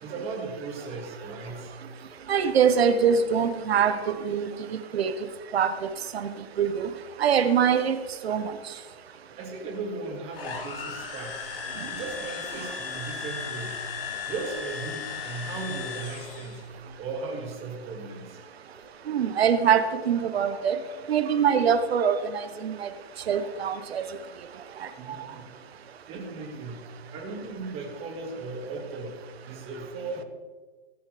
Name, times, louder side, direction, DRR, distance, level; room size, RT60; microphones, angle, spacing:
voice 1, 0.0-1.7 9.4-11.5 11.9-13.8 14.3-16.6 17.0-18.4 22.9-23.0 25.0-25.5 26.1-30.2, right 3 dB, 20° right, 2 dB, 1.9 m, -37 dB
voice 2, 2.3-5.1 5.5-5.7 6.1-6.3 6.6-6.9 7.2-8.0 8.2-8.5 19.1-20.8 21.1-22.9 23.3-24.1, right 7 dB, 75° right, 9 dB, 1.1 m, -23 dB
sound 1, 10.3-16.7, left 5 dB, 60° left, 3.0 m, -36 dB
15.0 x 10.5 x 3.4 m, 1.4 s
hypercardioid pair, 155°, 31 cm